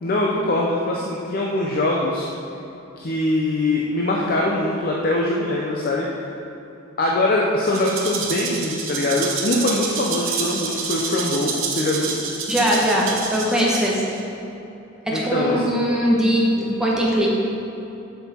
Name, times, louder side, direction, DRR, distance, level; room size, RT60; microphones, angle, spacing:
voice 1, 0.0-2.3 3.0-6.0 7.0-12.1 15.1-15.7, left 1 dB, 45° left, -3 dB, 0.6 m, -22 dB
Rattle (instrument), 7.7-14.2, right 5 dB, 70° right, 0.9 m, -28 dB
voice 2, 12.5-14.0 15.1-17.3, equal, 5° right, -5 dB, 1.1 m, -20 dB
6.9 x 6.6 x 4.3 m, 2.9 s
head